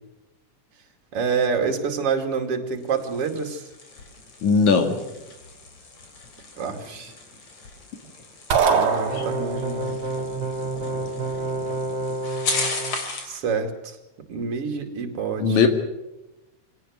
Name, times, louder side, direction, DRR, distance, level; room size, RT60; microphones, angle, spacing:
voice 1, 1.1-3.6 6.6-7.1 8.7-10.0 13.2-14.0 14.3-15.6, right 5 dB, 50° right, 4 dB, 3.4 m, -27 dB
sound 1, 2.7-13.4, left 3 dB, 50° left, 4.2 m, -36 dB
voice 2, 4.4-5.0 9.2-9.3 15.4-15.7, left 5 dB, 75° left, 6 dB, 3.5 m, -18 dB
sound 2, 8.5-9.8, right 6 dB, 70° right, 3.1 m, -22 dB
sound 3, 9.1-13.0, right 2 dB, 25° right, 4.6 m, -29 dB
24.5 x 18.0 x 6.4 m, 0.99 s
omnidirectional pair, 3.4 m